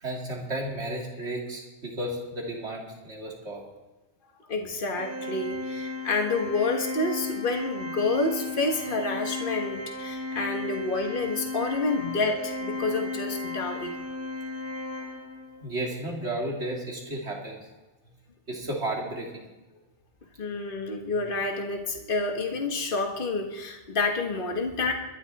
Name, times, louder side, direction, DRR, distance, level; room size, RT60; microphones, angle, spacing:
voice 1, 0.0-3.6 15.6-17.6 18.5-19.5, right 1 dB, 70° right, -1 dB, 3.2 m, -33 dB
voice 2, 4.5-13.9 20.4-24.9, left 3 dB, 50° left, 3 dB, 1.7 m, -29 dB
Organ, 4.9-15.7, left 3 dB, 15° right, 1.3 m, -35 dB
22.5 x 11.0 x 4.2 m, 1.1 s
omnidirectional pair, 1.2 m